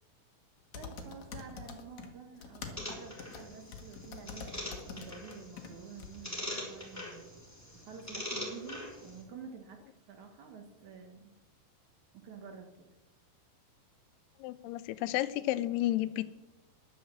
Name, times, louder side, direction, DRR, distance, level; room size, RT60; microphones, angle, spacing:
sound 1, 0.7-2.1 2.3-5.7 6.0-6.1, left 6 dB, 55° left, 2.3 m, -45 dB
voice 1, 0.7-7.4 7.8-9.8 10.1-11.3 12.1-12.7, right 6 dB, 65° right, 5 dB, 2.2 m, -49 dB
sound 2, 2.8-9.2, left 1 dB, 5° left, 2.7 m, -43 dB
voice 2, 14.4-16.2, left 15 dB, 90° left, 15 dB, 2.7 m, -31 dB
11.0 x 9.5 x 7.3 m, 1.0 s
omnidirectional pair, 4.5 m